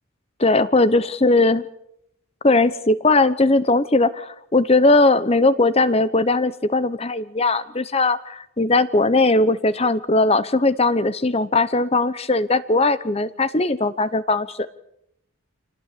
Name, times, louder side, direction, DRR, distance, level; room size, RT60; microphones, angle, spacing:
voice 1, 0.4-1.6 2.4-14.6, left 2 dB, 30° left, 15 dB, 0.9 m, -19 dB
26.0 x 19.0 x 8.3 m, 0.77 s
head